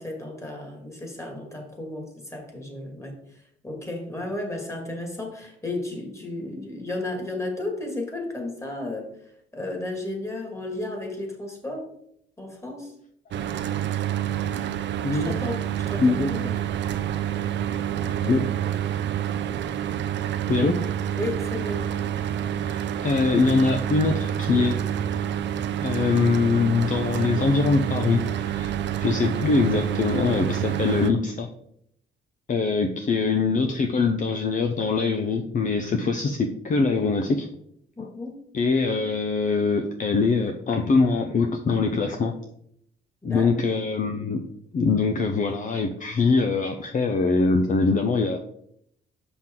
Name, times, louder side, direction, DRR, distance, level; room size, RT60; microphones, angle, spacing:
voice 1, 0.0-3.1 3.6-9.1 9.5-11.9 12.4-12.9 15.1-16.7 21.2-21.8 38.0-38.4 43.2-43.5, left 2 dB, 15° left, 1 dB, 2.2 m, -33 dB
Mechanical fan, 13.3-31.1, right 10 dB, 65° right, 0.6 m, -28 dB
voice 2, 16.0-16.5 18.0-18.4 20.5-20.7 22.6-24.8 25.8-28.7 29.0-31.5 32.5-37.5 38.0-38.1 38.5-42.3 43.2-44.4 44.7-48.4, left 4 dB, 40° left, 5 dB, 0.7 m, -23 dB
6.1 x 5.9 x 3.8 m, 0.71 s
cardioid pair, 90°, 20 cm